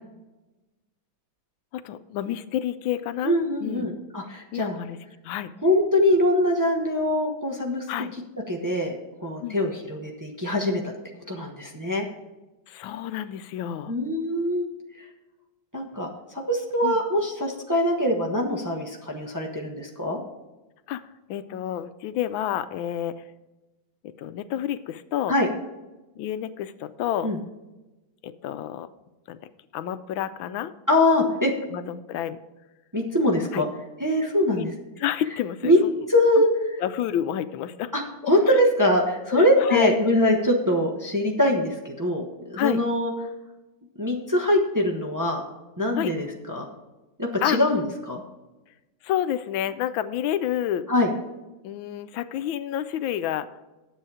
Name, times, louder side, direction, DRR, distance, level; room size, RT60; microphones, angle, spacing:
voice 1, 1.7-3.4 3.6-3.9 4.5-5.0 5.2-5.5 7.9-8.1 9.4-9.6 12.7-13.9 16.8-17.0 20.9-21.0 21.3-23.2 24.2-25.3 26.2-27.3 28.2-28.9 29.3-29.4 29.7-30.7 31.7-32.4 33.5-33.6 34.5-34.7 35.0-35.9 36.8-37.9 38.2-38.6 39.3-39.9 42.6-42.8 45.9-46.1 47.4-47.6 49.0-50.9 51.6-53.5, left 11 dB, 90° left, 13 dB, 1.4 m, -29 dB
voice 2, 3.2-4.8 5.6-7.8 8.5-8.9 9.2-10.9 11.3-12.0 13.9-14.7 15.7-16.1 16.3-20.2 25.3-25.5 27.2-27.4 30.9-31.5 32.9-33.7 34.0-34.7 35.6-35.8 36.1-36.8 37.9-42.2 42.5-43.1 44.0-45.4 45.8-46.6 47.2-48.2 50.9-51.1, left 1 dB, 15° right, 1 dB, 0.9 m, -23 dB
10.0 x 7.8 x 4.9 m, 1.1 s
omnidirectional pair, 2.1 m